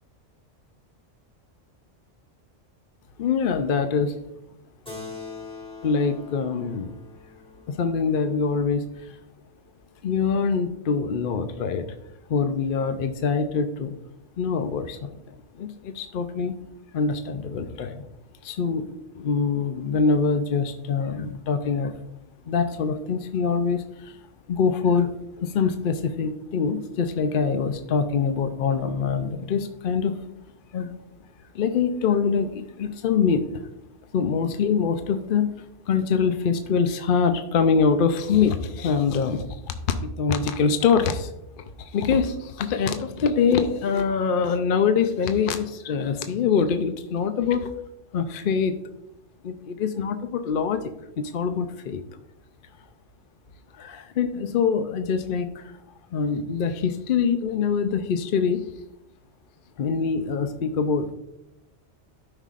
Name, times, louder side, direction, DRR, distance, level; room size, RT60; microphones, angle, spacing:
voice 1, 3.2-4.2 5.8-7.0 7.7-8.9 10.0-11.9 12.3-13.9 14.4-15.1 15.5-16.5 16.9-18.0 18.4-21.9 22.5-24.2 24.5-25.1 25.4-30.2 30.7-31.0 31.5-33.5 34.1-35.5 35.9-39.7 40.0-41.3 41.6-47.7 48.1-48.7 49.4-52.0 53.8-55.7 56.1-58.7 59.8-61.1, left 6 dB, 55° left, 8 dB, 0.7 m, -24 dB
Keyboard (musical), 4.9-9.7, left 4 dB, 5° left, 1.7 m, -43 dB
13.0 x 5.5 x 2.5 m, 0.86 s
omnidirectional pair, 1.2 m